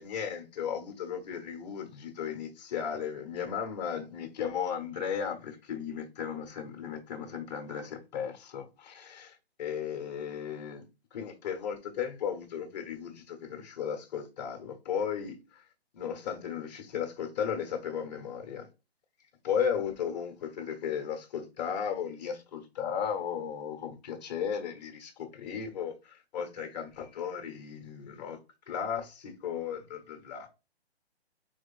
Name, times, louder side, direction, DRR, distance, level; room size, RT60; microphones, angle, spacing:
voice 1, 0.0-10.8 11.1-15.6 15.9-18.7 19.4-28.4 28.7-30.5, left 7 dB, 40° left, 1.3 m, -35 dB
4.9 x 4.4 x 2.5 m
figure-of-eight pair, 135°, 33 cm